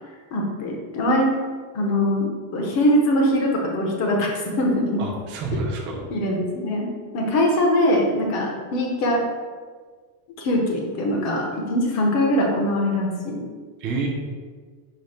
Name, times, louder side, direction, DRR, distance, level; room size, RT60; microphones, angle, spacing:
voice 1, 0.3-1.3 1.7-5.1 6.1-9.2 10.4-13.4, left 1 dB, 35° left, 0 dB, 0.6 m, -22 dB
voice 2, 5.0-6.1 13.8-14.1, right 3 dB, 25° right, -2 dB, 0.4 m, -28 dB
5.0 x 2.0 x 4.2 m, 1.5 s
cardioid pair, 170°, 50 cm